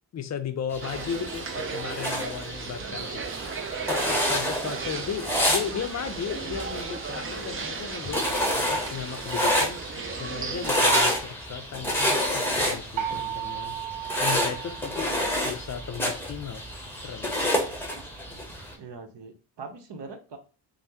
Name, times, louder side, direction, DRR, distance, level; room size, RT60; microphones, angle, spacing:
voice 1, 0.1-3.2 3.8-9.8 10.2-13.8 14.2-15.2 15.4-16.6 17.0-17.4, left 7 dB, 35° left, 0.5 m, -35 dB
sound 1, 0.7-18.7, equal, 5° left, 1.0 m, -29 dB
sound 2, 0.8-11.0, right 5 dB, 30° right, 0.5 m, -36 dB
sound 3, 13.0-15.7, right 11 dB, 85° right, 0.7 m, -35 dB
voice 2, 15.0-15.4 18.8-20.4, right 4 dB, 60° right, 0.8 m, -42 dB
3.3 x 2.1 x 2.8 m
cardioid pair, 75°, 48 cm